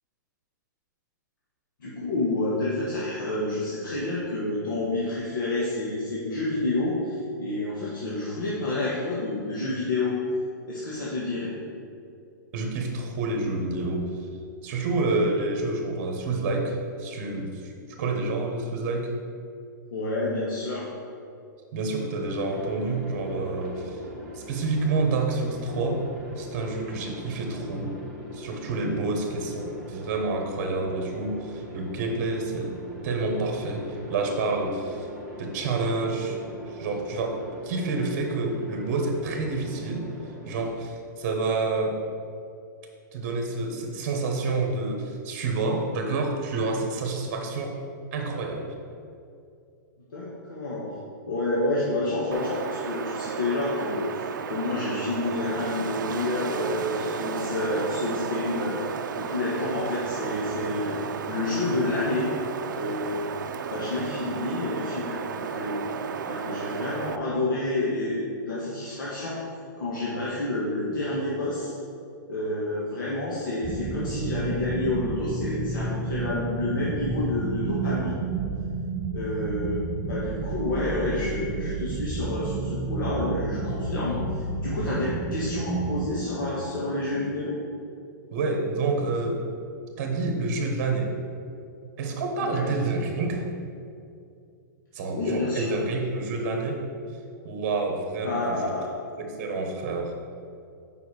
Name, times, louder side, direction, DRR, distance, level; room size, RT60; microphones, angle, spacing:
voice 1, 1.8-10.2 10.7-11.5 19.9-20.9 50.1-50.9 51.2-58.8 59.2-61.0 61.3-62.3 62.7-65.8 66.3-69.4 69.8-71.7 72.3-78.2 79.1-79.8 80.1-87.6 92.4-92.7 95.1-95.7 98.2-98.9, left 2 dB, 85° left, -7 dB, 1.7 m, -29 dB
voice 2, 12.5-14.1 14.6-17.7 18.0-19.1 21.7-24.0 24.3-26.0 26.4-28.0 28.3-32.7 33.0-35.1 35.4-36.4 36.7-40.1 40.4-42.0 43.1-47.8 48.1-48.7 88.3-89.4 90.0-91.1 92.0-93.4 94.9-96.8 97.4-98.6 99.2-100.1, right 3 dB, 40° right, 2 dB, 1.2 m, -28 dB
Aircraft, 22.4-40.7, left 1 dB, 5° left, 1.8 m, -42 dB
Wind, 52.3-67.2, right 7 dB, 75° right, 0.5 m, -33 dB
sound 1, 73.6-86.1, right 4 dB, 15° right, 0.4 m, -31 dB
6.9 x 5.4 x 4.9 m, 2.4 s
hypercardioid pair, 170°, 10 cm